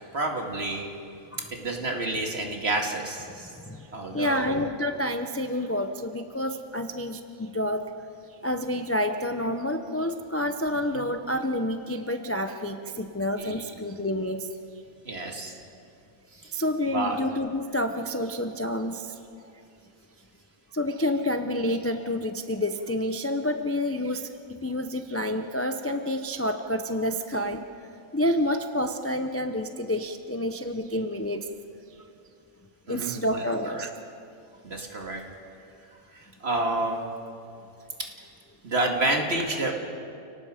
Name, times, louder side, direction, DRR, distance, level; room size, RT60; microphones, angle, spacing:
voice 1, 0.1-0.9 1.5-3.5 3.9-4.7 10.9-11.1 13.4-13.6 15.0-15.5 16.4-16.6 16.9-17.2 32.9-33.9 34.6-35.2 36.1-37.0 38.6-39.7, right 2 dB, 45° right, 1 dB, 2.4 m, -29 dB
voice 2, 3.5-7.9 8.4-14.5 16.5-19.2 20.7-24.3 24.6-27.7 28.1-31.5 32.9-33.9, left 1 dB, 15° left, 6 dB, 0.4 m, -29 dB
29.5 x 18.0 x 5.1 m, 2.5 s
omnidirectional pair, 1.5 m